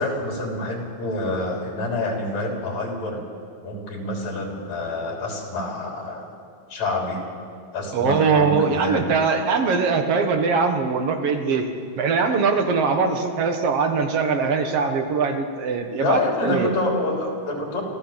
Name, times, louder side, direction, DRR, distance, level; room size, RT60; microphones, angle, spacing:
voice 1, 0.0-3.2 3.6-6.3 6.7-7.2 7.7-9.1 16.0-17.8, left 2 dB, 65° left, 0 dB, 4.9 m, -27 dB
voice 2, 7.9-11.7 12.0-16.7, right 5 dB, 55° right, 5 dB, 2.3 m, -22 dB
26.0 x 15.0 x 7.4 m, 2.3 s
omnidirectional pair, 3.4 m